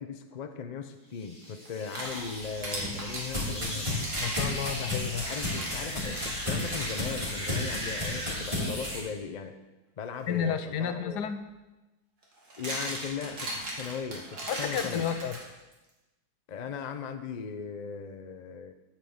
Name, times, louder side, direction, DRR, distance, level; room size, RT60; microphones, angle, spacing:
voice 1, 0.0-4.0 5.2-9.6 10.0-11.3 12.6-15.1 16.5-18.7, left 6 dB, 60° left, 8 dB, 0.4 m, -38 dB
sound 1, 1.1-9.0, equal, 5° left, 2.7 m, -38 dB
sound 2, 1.7-3.3 3.9-7.3 7.8-7.9 8.6-8.8 10.9-11.0 12.2-15.7, right 1 dB, 65° right, 2.5 m, -38 dB
sound 3, 2.4-9.0, left 2 dB, 15° right, 3.1 m, -34 dB
voice 2, 4.2-5.3 10.3-11.4 14.5-15.4, left 8 dB, 80° left, 10 dB, 1.3 m, -31 dB
9.2 x 5.9 x 7.1 m, 1.1 s
omnidirectional pair, 1.8 m